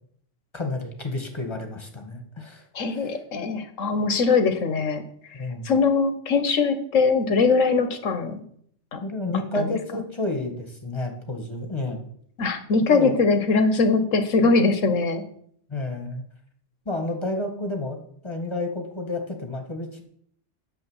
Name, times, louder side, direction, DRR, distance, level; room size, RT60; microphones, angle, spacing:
voice 1, 0.5-2.6 2.9-3.1 5.3-5.7 9.0-12.0 12.9-13.2 15.7-16.2 16.8-20.0, left 2 dB, 20° left, 4 dB, 1.7 m, -30 dB
voice 2, 2.7-5.0 5.6-8.4 8.9-9.0 9.5-9.7 12.4-15.2, left 4 dB, 85° left, 8 dB, 1.6 m, -21 dB
9.4 x 7.3 x 7.3 m, 0.66 s
omnidirectional pair, 1.3 m